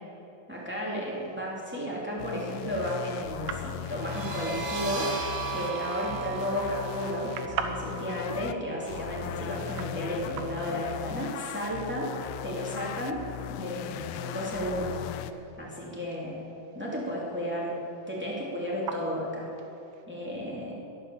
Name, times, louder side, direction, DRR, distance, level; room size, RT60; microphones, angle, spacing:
voice 1, 0.5-5.1 5.5-12.2 12.4-16.4 16.7-19.5 20.0-20.8, equal, 5° right, -5 dB, 1.4 m, -33 dB
sound 1, 0.5-20.1, right 7 dB, 75° right, 2.5 m, -45 dB
sound 2, 2.2-8.5 8.9-15.3, left 11 dB, 90° left, 2.3 m, -38 dB
sound 3, 3.9-9.3, right 7 dB, 50° right, 3.6 m, -37 dB
21.5 x 8.1 x 7.7 m, 3.0 s
omnidirectional pair, 5.4 m